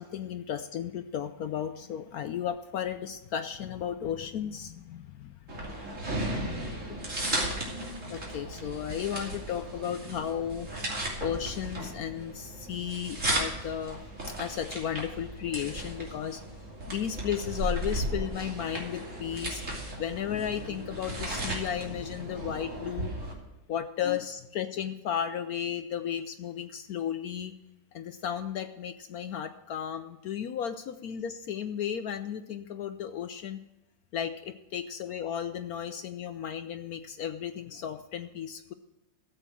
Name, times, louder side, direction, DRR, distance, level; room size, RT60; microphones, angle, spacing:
voice 1, 0.0-5.7 7.5-10.7 11.2-14.0 14.4-16.4 16.9-19.6 20.0-23.1 23.7-27.5 27.9-33.6 34.1-38.7, left 9 dB, 70° left, 10 dB, 0.9 m, -34 dB
sound 1, 5.5-23.3, right 1 dB, 40° right, 3.1 m, -35 dB
13.5 x 8.0 x 7.5 m, 0.99 s
omnidirectional pair, 2.0 m